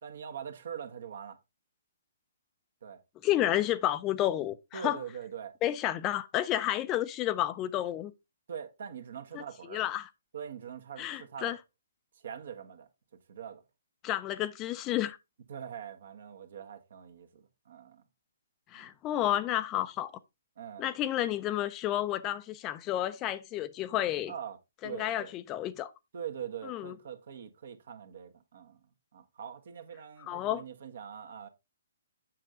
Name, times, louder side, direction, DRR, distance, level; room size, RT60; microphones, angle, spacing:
voice 1, 0.0-1.4 2.8-3.0 4.7-5.5 5.8-5.9 8.5-9.8 10.3-11.5 12.1-12.9 13.3-13.6 15.5-18.0 18.7-18.9 20.6-20.9 24.3-24.6 24.8-25.3 26.1-28.8 29.1-31.5, right 8 dB, 65° right, 1.5 m, -43 dB
voice 2, 3.2-5.0 5.6-8.1 9.3-9.4 9.7-10.1 11.0-11.6 14.0-15.2 18.7-20.1 20.8-24.3 24.8-25.9 26.6-26.9 30.3-30.6, left 13 dB, 25° left, 0.5 m, -31 dB
7.5 x 6.6 x 3.6 m
hypercardioid pair, 140°, 0 cm